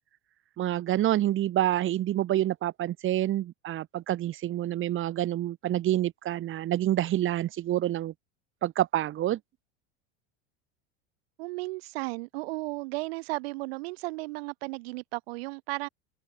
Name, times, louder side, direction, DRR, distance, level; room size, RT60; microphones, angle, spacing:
voice 1, 0.6-8.1 8.6-9.4, right 13 dB, 40° right, 2.9 m, -27 dB
voice 2, 11.4-15.9, right 24 dB, 75° right, 6.9 m, -34 dB
open air
supercardioid pair, 125°, 31 cm